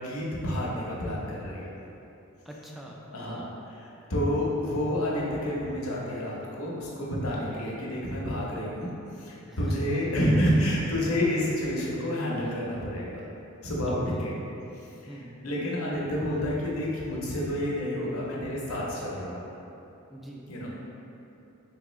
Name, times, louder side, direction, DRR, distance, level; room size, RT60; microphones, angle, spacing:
voice 1, 0.0-1.7 3.1-8.9 9.2-13.2 13.6-14.3 15.0-15.2 15.4-19.5 20.5-20.7, equal, 70° left, -4 dB, 0.8 m, -29 dB
voice 2, 2.5-3.5 7.3-7.4 9.5-10.2 13.9-14.3 15.1-15.3 20.1-20.5, equal, ahead, -3 dB, 0.3 m, -42 dB
3.6 x 3.4 x 3.1 m, 2.8 s
head